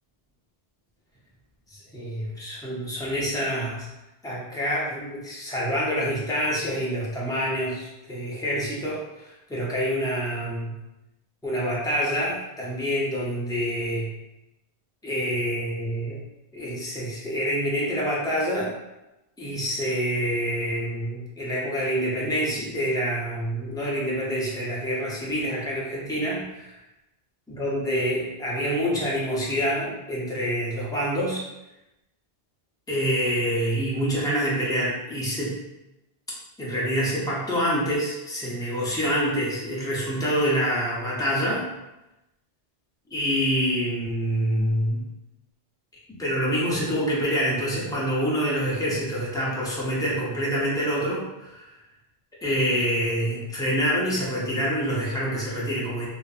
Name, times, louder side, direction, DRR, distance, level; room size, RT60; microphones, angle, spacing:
voice 1, 1.7-3.9 4.2-10.7 11.4-14.1 15.0-16.2 16.5-18.8 19.4-26.8 27.5-31.4 32.9-35.6 36.6-41.7 43.1-45.0 46.1-51.7 52.4-56.1, equal, 5° left, -6 dB, 0.3 m, -26 dB
2.6 x 2.4 x 2.3 m, 0.95 s
omnidirectional pair, 1.1 m